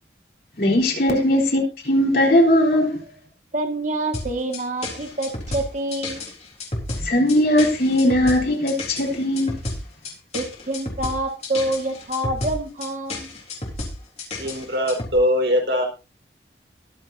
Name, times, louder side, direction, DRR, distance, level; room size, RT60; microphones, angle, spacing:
voice 1, 0.6-3.0 7.0-9.5, left 1 dB, 55° left, 4.1 m, -19 dB
voice 2, 3.5-6.2 10.3-13.4, right 1 dB, 45° right, 1.9 m, -27 dB
sound 1, 4.1-15.2, left 2 dB, 35° left, 4.0 m, -31 dB
voice 3, 14.4-15.9, equal, 65° right, 4.6 m, -21 dB
22.5 x 7.8 x 2.7 m
head